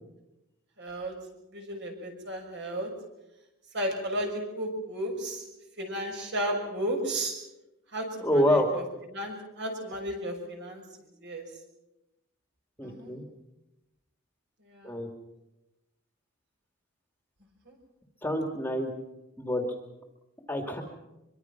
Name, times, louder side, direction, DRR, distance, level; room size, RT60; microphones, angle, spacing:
voice 1, 0.8-1.1 1.5-2.9 3.7-5.4 5.8-7.3 7.9-8.8 9.1-10.8 11.2-11.4 12.8-13.1 14.7-14.9, right 1 dB, 50° right, 2 dB, 6.4 m, -33 dB
voice 2, 8.2-8.7 12.8-13.2 14.8-15.1 18.2-18.9 19.4-19.6 20.5-20.8, left 1 dB, 10° left, 4 dB, 2.4 m, -27 dB
25.0 x 24.0 x 6.0 m, 0.93 s
head